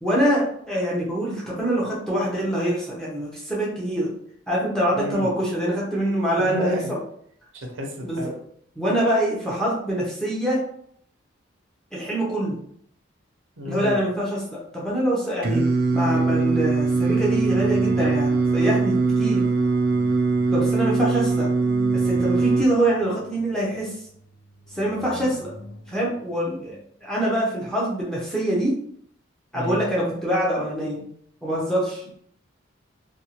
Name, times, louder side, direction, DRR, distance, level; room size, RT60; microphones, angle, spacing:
voice 1, 0.0-4.1 4.5-7.0 8.0-8.3 8.8-10.6 11.9-12.6 13.6-15.7 15.9-19.5 20.5-21.5 22.0-23.9 24.7-25.5 25.9-28.7 29.5-31.0 31.4-32.0, right 1 dB, 5° left, -6 dB, 0.6 m, -24 dB
voice 2, 5.0-5.3 6.4-7.0 7.5-8.3 13.6-14.0 29.5-29.8, equal, 80° right, 1 dB, 0.7 m, -31 dB
Singing, 15.4-22.7, right 3 dB, 45° right, 0.3 m, -21 dB
sound 1, 15.5-27.2, left 2 dB, 75° left, 0.5 m, -43 dB
2.6 x 2.3 x 2.8 m, 0.67 s
head